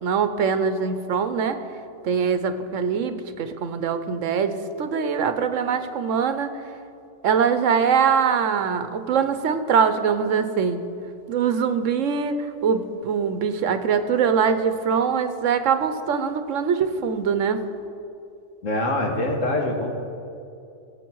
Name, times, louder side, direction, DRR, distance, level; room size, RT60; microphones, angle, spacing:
voice 1, 0.0-1.6 2.0-6.5 7.2-10.8 11.3-17.6, right 6 dB, 80° right, 10 dB, 1.1 m, -23 dB
voice 2, 18.6-20.0, left 1 dB, 85° left, 1 dB, 2.0 m, -24 dB
17.0 x 8.1 x 4.6 m, 2.6 s
omnidirectional pair, 1.3 m